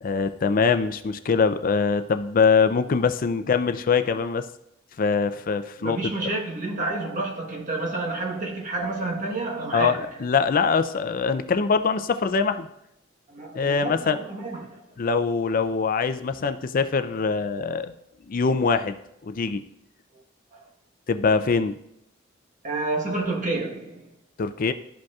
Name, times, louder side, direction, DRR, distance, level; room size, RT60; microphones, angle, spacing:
voice 1, 0.0-4.4 5.0-6.0 9.7-12.7 13.5-14.2 15.0-17.9 18.3-19.0 19.2-19.6 21.1-21.8 24.4-24.7, left 5 dB, 45° left, 0.4 m, -23 dB
voice 2, 5.8-10.2 13.3-14.8 20.5-20.6 22.6-24.1, right 2 dB, 40° right, 1.2 m, -29 dB
12.5 x 5.1 x 2.4 m
head